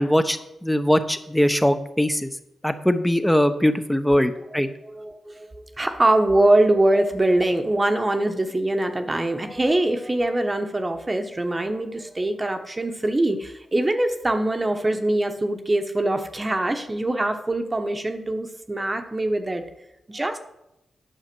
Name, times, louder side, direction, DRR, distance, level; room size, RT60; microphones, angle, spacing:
voice 1, 0.0-2.3 2.6-4.7, equal, 5° left, 10 dB, 0.9 m, -21 dB
voice 2, 4.5-19.6 20.1-20.4, right 1 dB, 25° right, 6 dB, 1.0 m, -23 dB
9.1 x 6.5 x 6.1 m, 0.86 s
cardioid pair, 60°, 0 cm